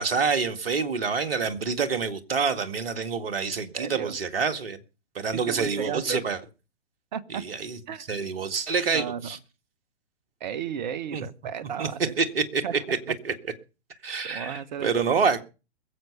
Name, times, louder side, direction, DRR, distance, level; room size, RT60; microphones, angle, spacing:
voice 1, 0.0-4.8 5.2-6.4 7.3-7.8 8.1-9.4 11.1-11.2 11.8-11.9 12.2-13.0 13.2-13.3 14.0-15.4, right 5 dB, 55° right, 2.1 m, -27 dB
voice 2, 3.7-4.2 5.3-6.2 7.1-7.4 7.9-8.0 8.9-9.4 10.4-12.1 12.6-13.0 14.2-14.9, right 8 dB, 40° right, 1.2 m, -34 dB
21.5 x 8.0 x 5.7 m
figure-of-eight pair, 120°, 35 cm